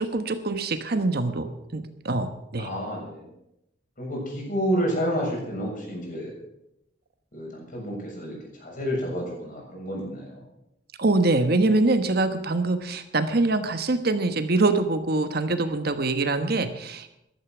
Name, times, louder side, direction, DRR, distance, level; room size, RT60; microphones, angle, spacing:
voice 1, 0.0-2.7 11.0-17.1, right 2 dB, 60° right, 9 dB, 1.2 m, -24 dB
voice 2, 2.6-3.3 4.0-6.3 7.3-10.4, equal, 50° left, -1 dB, 7.0 m, -30 dB
14.0 x 12.5 x 6.1 m, 0.85 s
head